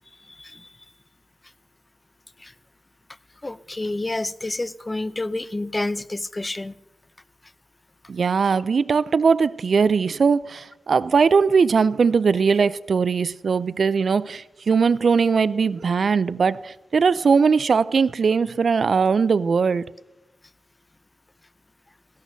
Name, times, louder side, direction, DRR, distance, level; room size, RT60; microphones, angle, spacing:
voice 1, 0.3-0.7 2.4-2.5 3.4-6.7, left 2 dB, 30° left, 0.5 m, -29 dB
voice 2, 8.1-19.8, right 5 dB, 65° right, 0.3 m, -20 dB
17.0 x 12.0 x 2.7 m
supercardioid pair, 40°, 0 cm